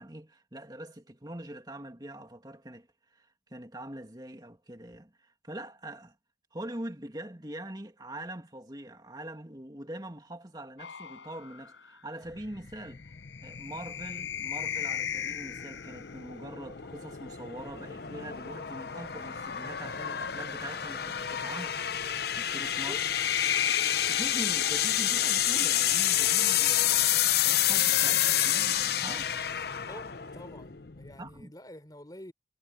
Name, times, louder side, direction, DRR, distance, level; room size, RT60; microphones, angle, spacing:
voice 1, 0.0-6.2 6.5-13.1 13.4-21.8 22.3-23.0 24.1-28.2 28.4-29.3 31.2-31.5, right 1 dB, 20° right, 2.4 m, -43 dB
sound 1, 10.8-16.3 17.7-20.7 22.0-25.5 26.8-29.7, left 9 dB, 85° left, 4.9 m, -38 dB
sound 2, 12.3-31.4, left 11 dB, 55° left, 0.7 m, -29 dB
voice 2, 22.8-23.3 27.9-28.6 29.7-32.3, left 1 dB, 20° left, 3.6 m, -48 dB
head